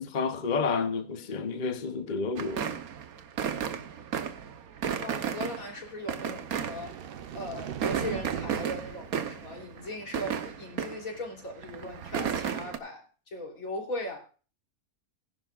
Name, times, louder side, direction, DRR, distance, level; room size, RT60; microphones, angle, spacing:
voice 1, 0.0-2.8, left 4 dB, 40° left, 0.8 m, -30 dB
sound 1, 2.4-7.3 7.7-11.2 11.6-12.8, right 8 dB, 85° right, 1.4 m, -34 dB
voice 2, 5.0-6.9 7.3-14.2, left 1 dB, 70° left, 3.7 m, -38 dB
sound 2, 6.0-10.3, right 9 dB, 55° right, 0.7 m, -41 dB
19.5 x 11.0 x 2.4 m
omnidirectional pair, 1.5 m